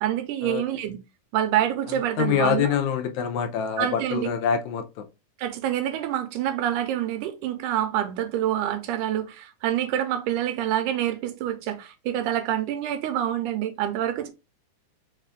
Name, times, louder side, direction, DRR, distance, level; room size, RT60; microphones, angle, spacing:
voice 1, 0.0-1.0 1.3-2.8 3.8-4.3 5.4-14.3, right 11 dB, 85° right, 2.1 m, -27 dB
voice 2, 2.2-5.1, left 8 dB, 80° left, 1.9 m, -25 dB
5.1 x 2.4 x 3.3 m
omnidirectional pair, 3.6 m